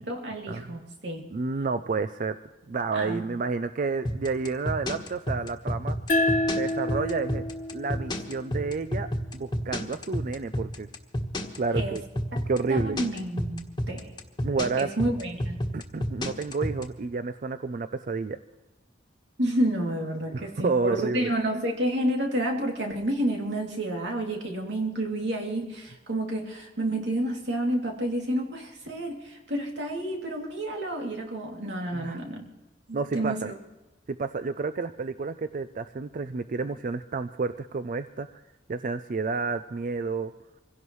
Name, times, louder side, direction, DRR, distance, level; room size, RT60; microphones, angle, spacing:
voice 1, 0.0-1.3 2.9-3.2 11.8-12.0 12.3-12.4 12.7-14.1 14.8-15.6 19.4-32.4 32.9-33.6, right 1 dB, 90° right, 0 dB, 2.7 m, -30 dB
voice 2, 1.3-2.4 2.7-6.0 6.6-7.5 7.7-9.1 9.3-10.9 11.6-12.0 12.5-13.0 14.4-14.9 15.7-18.4 20.3-21.3 31.9-32.2 32.9-33.5 34.1-38.4 38.7-40.3, right 4 dB, 50° right, 11 dB, 0.4 m, -30 dB
sound 1, 4.0-16.8, left 1 dB, 25° left, 1.3 m, -29 dB
sound 2, 6.1-9.3, left 1 dB, 45° left, 1.3 m, -29 dB
25.5 x 16.5 x 3.2 m, 1.1 s
head